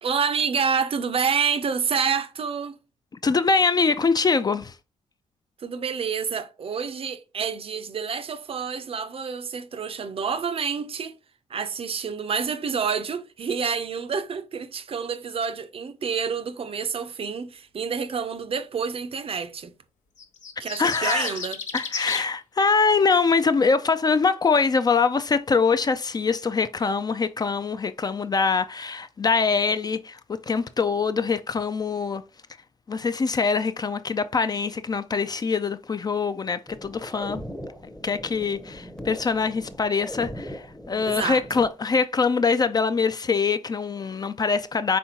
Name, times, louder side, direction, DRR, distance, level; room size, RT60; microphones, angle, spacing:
voice 1, 0.0-2.8 5.6-11.1 11.5-19.7 20.6-21.6 41.0-41.7, right 6 dB, 45° right, 0.5 m, -28 dB
voice 2, 3.2-4.7 20.8-21.4 21.7-30.2 30.5-32.2 32.9-37.4 38.0-45.0, left 5 dB, 30° left, 0.3 m, -23 dB
sound 1, 20.2-22.3, left 6 dB, 65° left, 0.7 m, -33 dB
sound 2, 36.7-41.7, equal, 5° left, 0.7 m, -39 dB
4.3 x 3.6 x 2.8 m
supercardioid pair, 50°, 14 cm